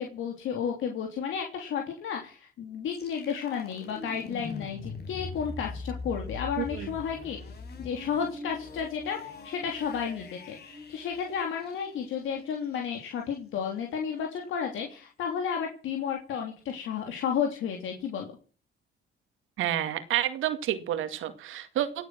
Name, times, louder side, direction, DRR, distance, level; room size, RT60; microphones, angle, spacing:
voice 1, 0.0-7.4 7.8-18.3, left 7 dB, 80° left, 2 dB, 3.3 m, -32 dB
sound 1, 2.9-12.8, left 4 dB, 55° left, 5.1 m, -42 dB
voice 2, 6.6-6.9 19.6-22.1, right 12 dB, 90° right, 9 dB, 2.2 m, -29 dB
18.0 x 9.4 x 6.2 m, 0.39 s
cardioid pair, 90°, 20 cm